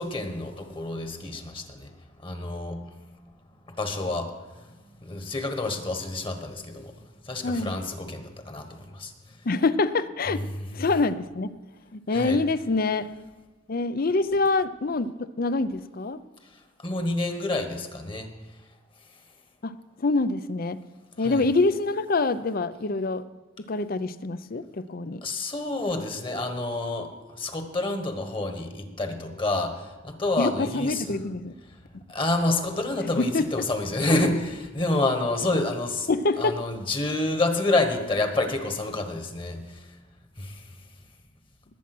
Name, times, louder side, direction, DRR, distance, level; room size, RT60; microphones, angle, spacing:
voice 1, 0.0-1.9 2.2-2.8 3.8-4.3 5.0-6.9 7.3-9.1 10.3-10.4 12.1-12.4 16.8-18.3 21.2-21.4 25.2-27.1 27.4-31.1 32.1-36.1 36.4-39.8 40.4-40.6, left 2 dB, 25° left, 6 dB, 1.4 m, -28 dB
voice 2, 7.4-7.8 9.4-10.4 10.7-11.5 11.9-13.1 13.7-16.2 19.6-20.8 21.2-23.2 23.6-25.2 30.4-31.5 33.2-33.7 36.1-36.6, left 3 dB, 50° left, 14 dB, 0.6 m, -25 dB
19.5 x 8.5 x 6.1 m, 1.2 s
head